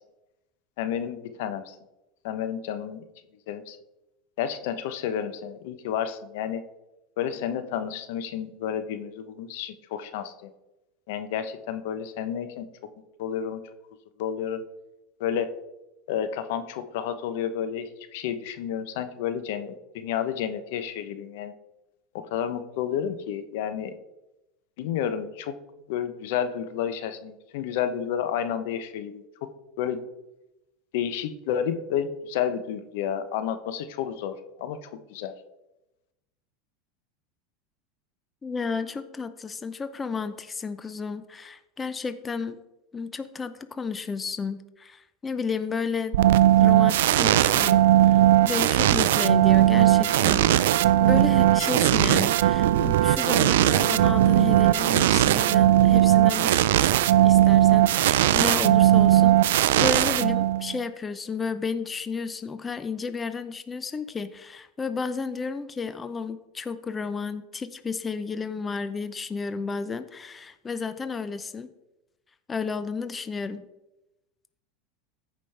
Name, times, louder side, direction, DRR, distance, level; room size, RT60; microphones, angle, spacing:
voice 1, 0.8-1.8 2.2-3.0 3.5-3.8 4.4-6.6 7.2-10.5 11.1-12.7 13.2-13.6 14.2-14.6 15.2-15.6 16.1-21.5 22.1-23.9 24.8-25.6 25.9-29.2 29.8-30.0 30.9-35.3, left 9 dB, 70° left, 10 dB, 0.8 m, -31 dB
voice 2, 38.4-42.6 42.9-46.2 46.6-50.5 50.9-56.9 57.2-71.7 72.5-73.7, left 5 dB, 20° left, 11 dB, 0.6 m, -32 dB
sound 1, 46.1-60.8, right 13 dB, 80° right, 0.3 m, -19 dB
14.5 x 5.2 x 3.3 m, 0.96 s
supercardioid pair, 105°, 0 cm